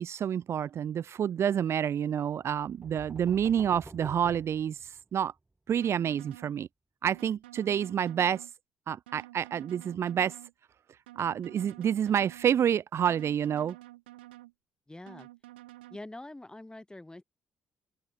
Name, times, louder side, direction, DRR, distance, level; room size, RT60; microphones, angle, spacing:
voice 1, 0.0-5.3 5.7-6.7 7.0-8.5 8.9-10.4 11.2-13.8, right 9 dB, 55° right, 0.5 m, -28 dB
sound 1, 2.5-5.4, right 2 dB, 20° right, 5.3 m, -48 dB
sound 2, 5.8-6.5 7.1-8.5 9.1-10.5 11.1-12.5 13.1-14.5 15.1-16.0, right 17 dB, 85° right, 5.3 m, -50 dB
voice 2, 14.9-15.3 15.9-17.2, left 1 dB, 15° left, 5.7 m, -45 dB
open air
hypercardioid pair, 45°, 5 cm